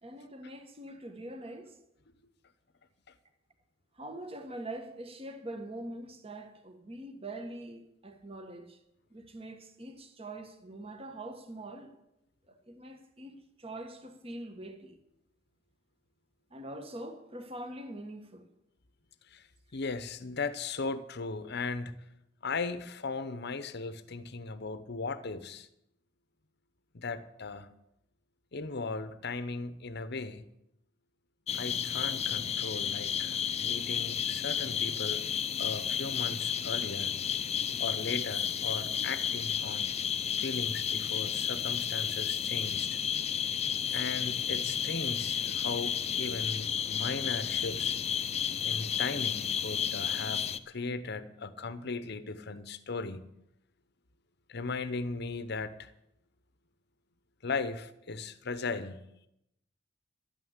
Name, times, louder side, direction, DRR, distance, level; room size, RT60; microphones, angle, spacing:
voice 1, 0.0-1.7 4.0-8.8 9.1-11.9 12.5-15.0 16.5-18.4, right 1 dB, 30° right, 1.5 m, -43 dB
voice 2, 19.3-21.9 22.4-25.7 26.9-27.7 28.5-30.5 31.5-35.3 35.6-37.1 37.8-39.9 40.4-43.0 43.9-48.0 48.6-53.2 54.5-55.9 57.4-59.0, left 4 dB, 60° left, 0.9 m, -37 dB
sound 1, 31.5-50.6, left 8 dB, 35° left, 0.6 m, -32 dB
12.0 x 9.3 x 8.1 m
head